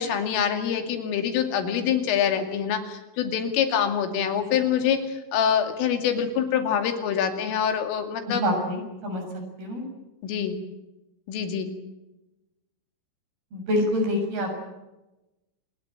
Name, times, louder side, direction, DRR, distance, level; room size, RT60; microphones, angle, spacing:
voice 1, 0.0-8.4 10.2-10.5 11.3-11.7, left 8 dB, 80° left, 6 dB, 5.0 m, -25 dB
voice 2, 8.3-9.2 9.6-9.8 13.5-14.5, left 1 dB, 50° right, 4 dB, 8.7 m, -26 dB
27.0 x 20.5 x 8.9 m, 1.0 s
omnidirectional pair, 5.7 m